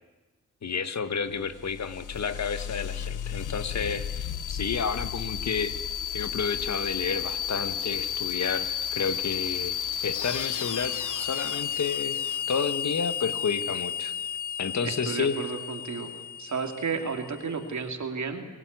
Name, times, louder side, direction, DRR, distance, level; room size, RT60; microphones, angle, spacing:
voice 1, 0.6-5.7 6.1-9.8 10.0-14.1 14.6-15.4, left 6 dB, 60° left, 11 dB, 1.6 m, -31 dB
sound 1, 1.4-17.7, left 9 dB, 75° left, 1.0 m, -33 dB
voice 2, 14.8-16.1 16.4-18.4, right 5 dB, 65° right, 5 dB, 2.7 m, -32 dB
24.5 x 16.5 x 9.5 m, 1.2 s
cardioid pair, 65°, 31 cm